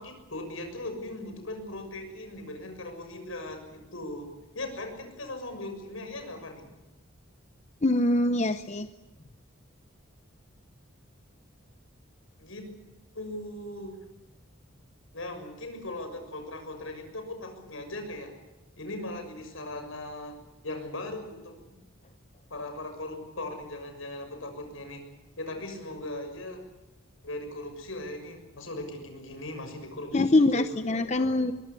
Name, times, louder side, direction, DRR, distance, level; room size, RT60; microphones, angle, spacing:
voice 1, 0.0-4.3 4.5-6.7 12.4-12.7 13.1-14.0 15.1-18.3 18.8-20.4 20.6-21.8 22.5-25.1 25.4-26.6 27.2-31.4, left 1 dB, 75° left, 6 dB, 6.7 m, -39 dB
voice 2, 7.8-8.9 30.1-31.5, left 2 dB, 35° left, 10 dB, 0.8 m, -24 dB
23.0 x 22.5 x 8.3 m, 1.0 s
head